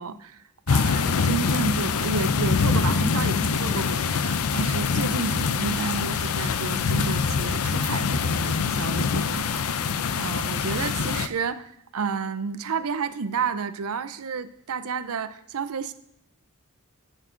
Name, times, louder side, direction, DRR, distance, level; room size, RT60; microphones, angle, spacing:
voice 1, 0.0-15.9, right 5 dB, 85° right, 13 dB, 0.6 m, -31 dB
sound 1, 0.7-11.3, left 5 dB, 80° left, 0.5 m, -24 dB
15.0 x 6.4 x 3.9 m, 0.74 s
head